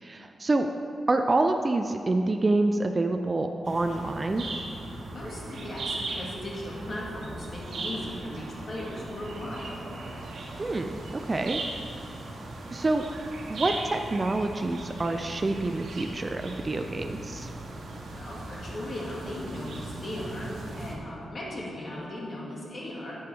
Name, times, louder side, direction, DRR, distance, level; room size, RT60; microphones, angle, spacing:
voice 1, 0.0-0.7 1.1-4.4 10.6-11.6 12.7-13.0 13.5-17.5, right 2 dB, 25° right, 5 dB, 0.3 m, -27 dB
sound 1, 3.6-21.0, right 2 dB, 85° right, 1.2 m, -38 dB
voice 2, 5.1-9.7 18.1-23.1, left 1 dB, 45° left, -5 dB, 1.9 m, -37 dB
10.5 x 6.9 x 3.3 m, 2.6 s
wide cardioid pair, 125°, 0 cm